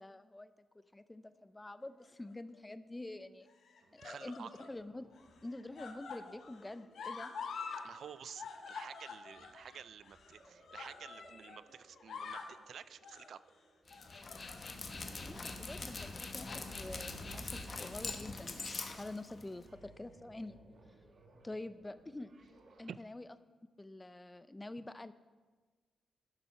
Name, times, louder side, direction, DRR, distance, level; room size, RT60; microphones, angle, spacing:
voice 1, 0.0-3.5 3.9-5.1 5.4-7.3 15.2-20.6 21.4-22.3 22.8-23.4 23.8-25.1, left 2 dB, 15° left, 13 dB, 0.4 m, -47 dB
sound 1, 2.0-2.6 3.5-4.8 5.1-7.9 8.1-11.6 11.9-12.6 13.0-13.3 13.9-14.9 15.3-15.5 16.2-16.7 17.0-17.2 18.3-19.0 19.9-20.0, left 5 dB, 70° left, 1.0 m, -48 dB
sound 2, 3.8-23.1, right 3 dB, 50° right, 1.6 m, -60 dB
voice 2, 4.0-4.7 7.8-13.4 22.9-23.0, right 8 dB, 65° right, 16 dB, 0.4 m, -51 dB
Dog, 13.9-19.7, left 3 dB, 35° left, 1.0 m, -43 dB
12.0 x 7.2 x 5.7 m, 1.3 s
wide cardioid pair, 135°, 0 cm